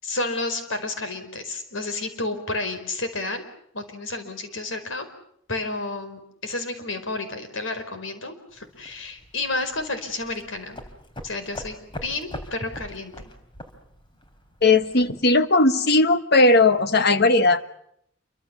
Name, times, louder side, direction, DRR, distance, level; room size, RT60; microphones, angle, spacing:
voice 1, 0.0-3.4 3.7-5.1 5.5-10.8 11.2-11.8 12.0-13.1, left 2 dB, 85° left, 8 dB, 5.0 m, -31 dB
sound 1, 8.5-15.3, left 1 dB, 25° left, 3.7 m, -42 dB
voice 2, 14.6-17.7, left 2 dB, 55° left, 10 dB, 1.5 m, -18 dB
28.5 x 24.5 x 7.1 m, 0.72 s
head